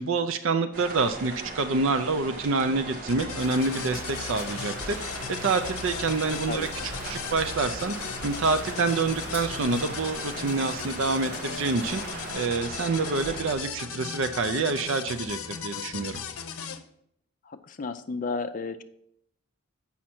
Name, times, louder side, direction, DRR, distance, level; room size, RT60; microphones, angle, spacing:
voice 1, 0.0-6.7 7.1-7.9 8.2-16.2, right 3 dB, 60° right, 10 dB, 0.5 m, -27 dB
sound 1, 0.7-13.5, right 2 dB, 40° right, 1.1 m, -39 dB
sound 2, 3.1-16.8, left 6 dB, 80° left, 0.7 m, -37 dB
sound 3, 3.4-12.3, left 1 dB, 10° right, 1.5 m, -42 dB
voice 2, 17.4-18.8, left 4 dB, 40° left, 10 dB, 0.4 m, -33 dB
7.4 x 5.6 x 4.4 m, 0.72 s
head